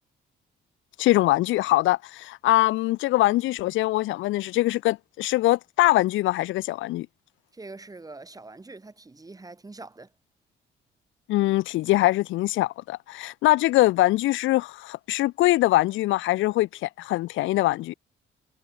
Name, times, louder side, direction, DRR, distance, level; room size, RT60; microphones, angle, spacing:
voice 1, 1.0-7.1 11.3-17.9, left 17 dB, 80° left, 0.4 m, -23 dB
voice 2, 7.5-10.1, right 3 dB, 20° right, 1.9 m, -43 dB
cardioid pair, 90°, 20 cm